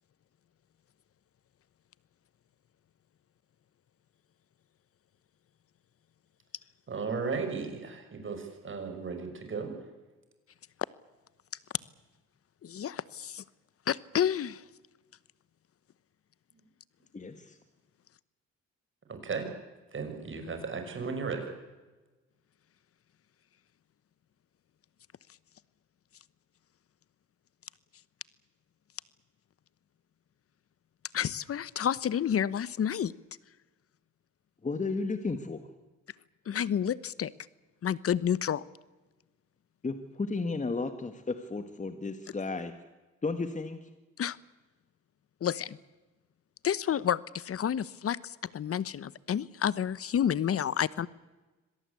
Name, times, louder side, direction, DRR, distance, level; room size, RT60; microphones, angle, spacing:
voice 1, 6.9-9.7 19.1-19.5 19.9-21.5, right 5 dB, 40° right, 5 dB, 6.2 m, -35 dB
voice 2, 12.6-13.4 13.9-14.6 31.1-33.1 36.5-37.3 37.8-38.6 44.2-44.4 45.4-45.8 46.6-51.1, left 9 dB, 50° left, 19 dB, 1.0 m, -30 dB
voice 3, 17.1-17.6 34.6-35.6 39.8-42.7 43.2-43.9, left 3 dB, 25° left, 8 dB, 1.8 m, -33 dB
26.0 x 17.5 x 8.4 m, 1.2 s
cardioid pair, 90°, 30 cm